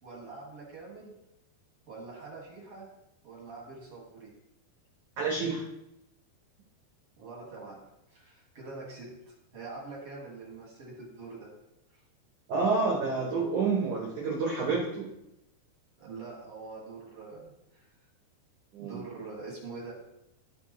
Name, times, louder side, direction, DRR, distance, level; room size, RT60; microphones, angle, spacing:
voice 1, 0.0-1.2 1.9-2.9 3.2-4.3 7.2-7.8 8.1-9.1 9.5-11.5 11.9-12.0 16.0-17.9 18.8-19.9, right 3 dB, 45° right, -4 dB, 2.1 m, -44 dB
voice 2, 5.2-5.6 12.5-15.1 18.7-19.0, right 4 dB, 70° right, -2 dB, 1.9 m, -28 dB
13.0 x 5.1 x 3.2 m, 0.83 s
omnidirectional pair, 5.0 m